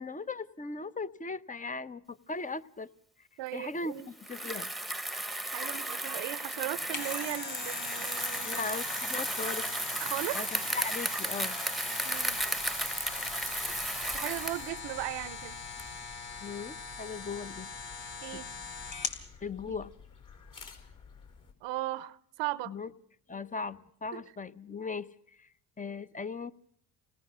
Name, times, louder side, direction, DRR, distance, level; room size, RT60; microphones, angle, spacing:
voice 1, 0.0-2.9 3.2-3.3 3.5-4.7 8.4-9.7 10.3-11.6 16.4-17.7 18.3-18.4 19.4-19.9 22.7-22.9 23.3-26.5, left 4 dB, 15° left, 0.9 m, -38 dB
voice 2, 3.4-4.1 5.5-8.6 10.0-10.4 12.0-12.4 14.1-15.6 18.2-18.5 19.7-19.8 21.6-22.7 24.1-24.2, right 16 dB, 70° right, 0.9 m, -37 dB
Bicycle, 4.2-14.7, right 1 dB, ahead, 1.2 m, -34 dB
sound 1, 6.7-19.2 19.7-19.8, left 5 dB, 75° left, 3.7 m, -41 dB
sound 2, 12.1-21.5, left 5 dB, 45° left, 4.9 m, -53 dB
27.5 x 19.0 x 6.2 m
supercardioid pair, 75°, 45 cm